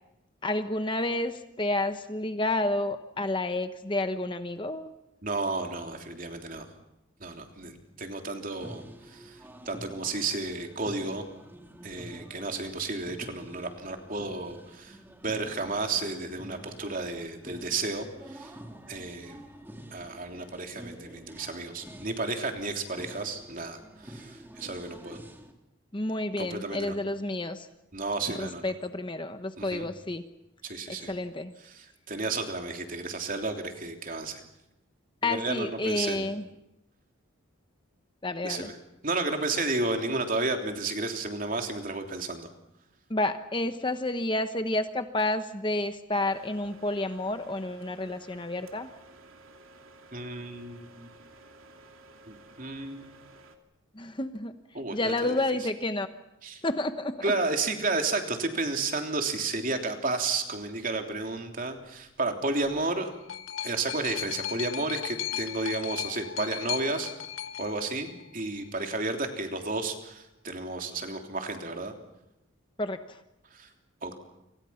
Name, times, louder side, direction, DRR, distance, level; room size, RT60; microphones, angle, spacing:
voice 1, 0.4-4.9 25.9-27.7 28.3-30.2 30.9-31.5 35.2-36.4 38.2-38.7 43.1-48.9 53.9-54.5 54.9-56.1 56.6-57.2 72.8-73.2, left 2 dB, 25° left, 9 dB, 1.1 m, -30 dB
voice 2, 5.2-6.7 7.2-11.2 11.8-15.0 15.2-18.5 18.9-19.4 19.9-25.2 26.4-26.9 27.9-28.7 29.6-29.9 30.6-31.1 31.6-34.4 35.2-36.3 38.4-38.7 39.0-42.5 50.1-51.1 52.3-53.1 54.7-55.3 56.4-56.6 57.2-63.1 63.6-67.1 67.6-71.9 73.5-73.7 74.0-74.2, right 3 dB, 40° right, 4 dB, 3.3 m, -32 dB
sound 1, 8.6-25.5, equal, 10° right, 2.3 m, -48 dB
sound 2, 46.1-53.6, right 2 dB, 85° right, 2.9 m, -53 dB
sound 3, 62.7-68.6 69.5-69.6, left 11 dB, 80° left, 1.2 m, -37 dB
29.5 x 25.5 x 5.8 m, 0.89 s
head